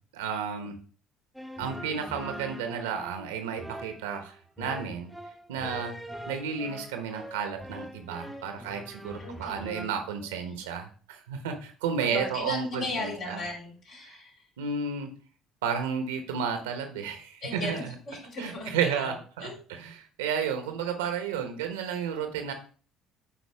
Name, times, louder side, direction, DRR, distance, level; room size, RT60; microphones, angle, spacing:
voice 1, 0.1-0.8 1.6-5.1 5.5-5.9 6.3-13.4 14.0-14.2 14.6-15.1 15.6-17.9 18.4-22.5, right 6 dB, 85° right, 6 dB, 1.1 m, -32 dB
sound 1, 1.3-9.9, right 1 dB, ahead, 1.0 m, -43 dB
voice 2, 9.2-9.9 10.4-10.6 12.0-14.5 17.4-19.2 19.4-19.6, left 2 dB, 65° left, -2 dB, 3.7 m, -37 dB
8.8 x 4.4 x 3.5 m, 0.41 s
hypercardioid pair, 60°, 0 cm